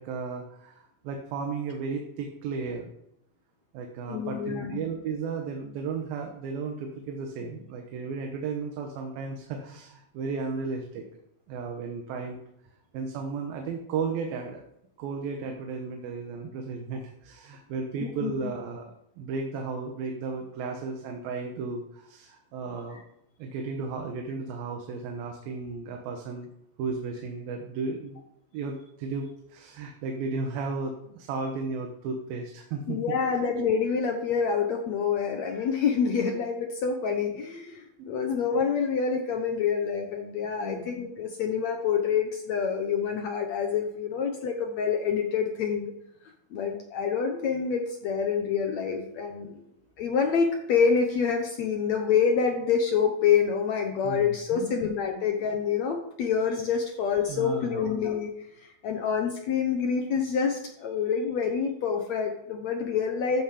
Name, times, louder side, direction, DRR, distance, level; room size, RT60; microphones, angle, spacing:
voice 1, 0.0-2.9 3.7-11.2 11.5-12.4 12.9-14.6 15.0-23.0 23.4-26.5 26.8-28.2 28.5-33.0 40.6-40.9 54.0-54.8 57.3-57.9, right 4 dB, 75° right, 3 dB, 2.9 m, -34 dB
voice 2, 4.1-4.8 18.0-18.3 32.9-45.9 46.5-49.6 50.0-63.4, left 6 dB, 70° left, 4 dB, 1.8 m, -27 dB
14.0 x 8.5 x 5.0 m, 0.77 s
omnidirectional pair, 4.3 m